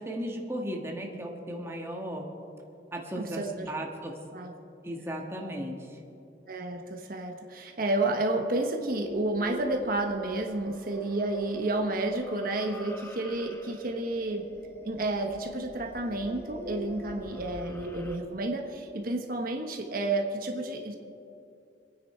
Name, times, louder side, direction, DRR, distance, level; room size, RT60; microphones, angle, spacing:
voice 1, 0.0-2.3 2.9-4.2 4.8-6.0, right 1 dB, 15° right, 0 dB, 1.6 m, -36 dB
voice 2, 3.2-3.7 4.3-4.5 6.5-14.5 14.8-20.9, right 2 dB, 55° right, 2 dB, 1.2 m, -31 dB
sound 1, 9.0-18.2, left 1 dB, 15° left, 1.1 m, -45 dB
25.5 x 9.8 x 4.4 m, 2.6 s
head